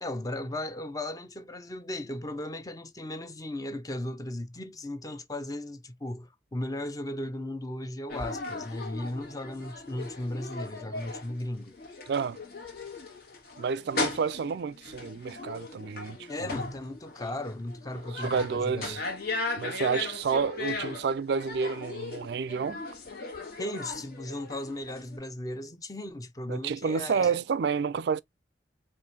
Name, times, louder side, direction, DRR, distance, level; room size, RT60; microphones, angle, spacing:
voice 1, 0.0-11.8 16.3-19.0 23.6-27.4, left 1 dB, 20° left, 0.6 m, -36 dB
sound 1, 8.1-25.2, left 3 dB, 55° left, 1.5 m, -38 dB
voice 2, 12.1-12.4 13.6-16.5 18.1-19.0 19.6-22.8 26.5-28.2, right 5 dB, 60° right, 0.3 m, -29 dB
4.8 x 2.6 x 2.6 m
head